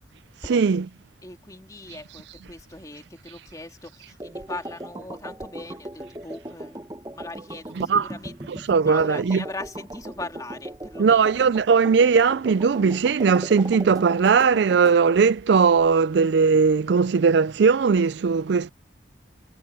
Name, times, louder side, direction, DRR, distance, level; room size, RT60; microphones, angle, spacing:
voice 1, 0.4-0.9 7.7-8.1 8.5-9.4 11.0-18.7, right 5 dB, 65° right, 0.4 m, -19 dB
voice 2, 1.2-6.9 7.1-8.4 8.8-11.4, left 2 dB, 20° left, 2.6 m, -39 dB
sound 1, 4.2-15.0, right 1 dB, 20° right, 0.9 m, -38 dB
head